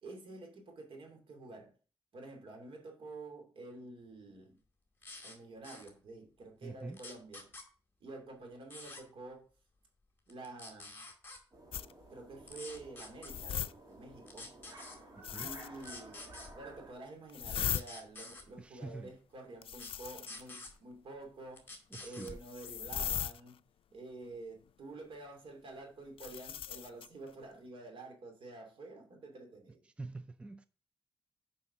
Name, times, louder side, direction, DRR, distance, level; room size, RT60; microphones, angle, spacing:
voice 1, 0.0-1.7 2.1-4.6 5.2-7.6 8.0-9.5 10.3-11.1 12.1-14.5 15.4-21.7 22.0-23.6 23.9-29.8, right 2 dB, 75° right, 2.6 m, -49 dB
small-cable-tie, 5.0-5.4 5.6-5.9 6.9-7.7 8.7-9.0 10.3-11.4 12.5-13.3 14.3-15.0 15.8-16.5 17.7-18.5 19.7-19.9 20.3-20.7 21.6-22.4 23.0-23.2, left 2 dB, 25° left, 2.2 m, -48 dB
voice 2, 6.6-7.0 15.1-15.5 18.6-19.1 21.9-22.4 29.9-30.7, right 3 dB, 10° right, 0.4 m, -45 dB
sound 1, 11.5-16.9, right 2 dB, 40° right, 2.5 m, -53 dB
sound 2, 11.7-11.9 13.3-13.7 15.2-15.8 17.3-17.8 19.6-20.4 22.3-23.4 26.2-27.1, left 10 dB, 75° left, 0.4 m, -37 dB
7.1 x 5.5 x 5.8 m
wide cardioid pair, 125°, 9 cm